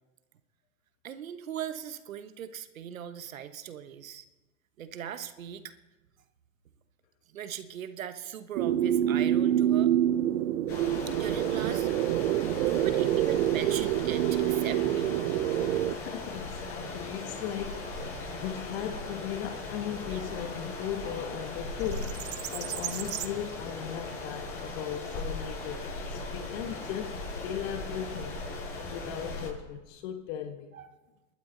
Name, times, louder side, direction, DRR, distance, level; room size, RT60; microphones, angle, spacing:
voice 1, 1.0-4.3 4.8-5.7 7.3-9.9 11.1-11.9 12.2-12.3 12.6-15.2 30.7-30.9, right 9 dB, 85° right, 1.2 m, -39 dB
sound 1, 8.6-16.0, right 12 dB, 65° right, 0.8 m, -26 dB
sound 2, 10.7-29.5, left 3 dB, 35° left, 7.3 m, -38 dB
voice 2, 15.9-22.2 22.5-28.4 28.9-30.8, left 10 dB, 55° left, 1.5 m, -37 dB
sound 3, 17.1-25.2, right 13 dB, 35° right, 1.1 m, -43 dB
30.0 x 12.0 x 4.0 m
hypercardioid pair, 105°, 39 cm